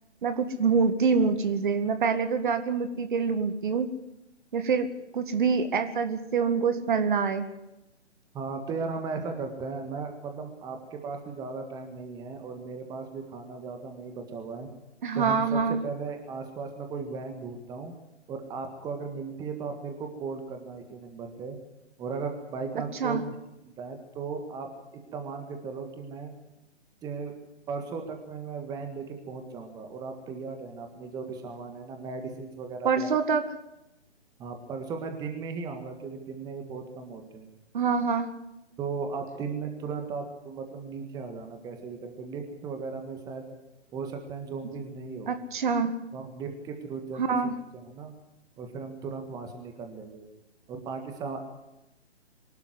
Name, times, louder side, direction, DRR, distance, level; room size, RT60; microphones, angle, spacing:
voice 1, 0.2-3.9 4.5-4.9 5.1-7.5 15.0-15.8 23.0-23.2 32.8-33.4 37.7-38.3 45.3-45.9 47.2-47.5, right 5 dB, 45° right, 9 dB, 2.0 m, -25 dB
voice 2, 8.3-14.7 15.1-17.9 18.3-21.6 22.0-23.4 23.6-26.3 27.0-27.3 27.7-33.1 34.4-37.5 38.8-43.6 43.9-45.4 46.1-48.1 48.6-50.3 50.7-51.6, right 5 dB, 10° right, 5 dB, 1.7 m, -37 dB
23.5 x 12.5 x 9.8 m, 0.91 s
figure-of-eight pair, 140°, 35 cm